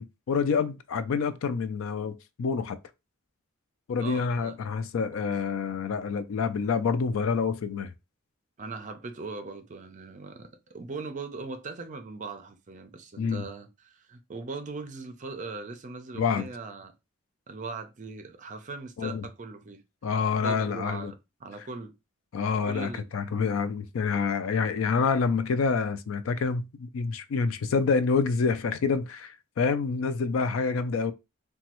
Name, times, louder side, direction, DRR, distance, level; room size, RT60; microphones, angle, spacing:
voice 1, 0.0-2.8 3.9-7.9 13.2-13.5 16.1-16.5 19.0-19.3 20.0-21.1 22.3-31.1, left 5 dB, 75° left, 0.4 m, -27 dB
voice 2, 4.0-4.6 8.6-16.9 17.5-19.8 20.4-21.2 21.4-21.9 22.7-23.1, right 3 dB, 40° right, 0.5 m, -39 dB
3.1 x 2.3 x 2.9 m
head